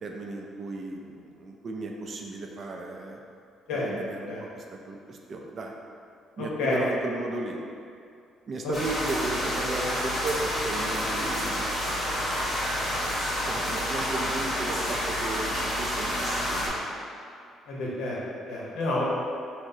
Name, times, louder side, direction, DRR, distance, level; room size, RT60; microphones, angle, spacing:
voice 1, 0.0-3.2 3.8-5.7 6.4-7.6 8.5-12.1 13.4-15.5 15.8-17.1, right 2 dB, 35° right, 1 dB, 0.3 m, -35 dB
voice 2, 6.4-6.8 8.6-8.8 17.7-18.2 18.5-19.0, left 2 dB, 80° left, -5 dB, 0.9 m, -29 dB
sound 1, 8.7-16.7, equal, 20° left, 1.5 m, -29 dB
6.0 x 2.0 x 2.7 m, 2.4 s
cardioid pair, 165°, 0 cm